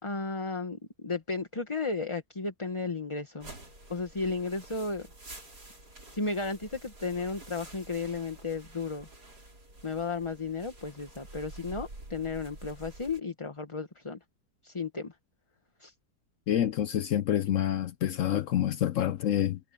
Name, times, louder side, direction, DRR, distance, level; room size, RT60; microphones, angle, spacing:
voice 1, 0.0-3.5 3.9-5.1 6.1-9.1 9.8-14.2 14.6-15.1 15.8-15.9, left 4 dB, 20° left, 1.2 m, -34 dB
sound 1, 3.4-13.2, right 2 dB, 80° right, 6.4 m, -49 dB
voice 2, 16.5-19.6, left 11 dB, 65° left, 0.8 m, -27 dB
omnidirectional pair, 1.7 m